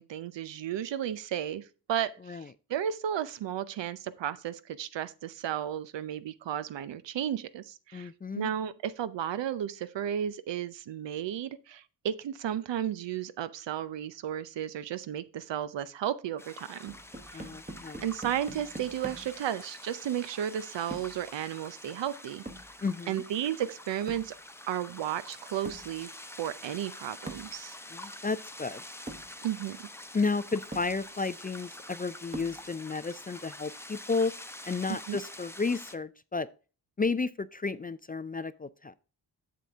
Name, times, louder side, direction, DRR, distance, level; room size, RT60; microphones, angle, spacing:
voice 1, 0.0-2.4 2.7-16.9 17.3-17.5 18.0-22.4 23.1-24.4 24.7-27.8 29.4-29.9 34.9-35.2, right 10 dB, 85° right, 0.7 m, -34 dB
voice 2, 7.9-8.5 17.3-18.0 22.8-23.2 27.9-28.8 30.1-34.3 34.6-36.5 37.0-38.9, left 4 dB, 20° left, 0.3 m, -32 dB
sound 1, 16.4-35.9, left 1 dB, 5° left, 0.7 m, -47 dB
sound 2, 16.9-19.4 20.9-21.2 22.5-22.7 24.1-24.4 25.7-26.0 27.3-27.6 28.5-28.6 29.1-29.4 30.2-30.3 30.7-31.0 32.3-32.7, right 2 dB, 15° right, 1.0 m, -43 dB
7.5 x 6.9 x 3.5 m
cardioid pair, 75°, 43 cm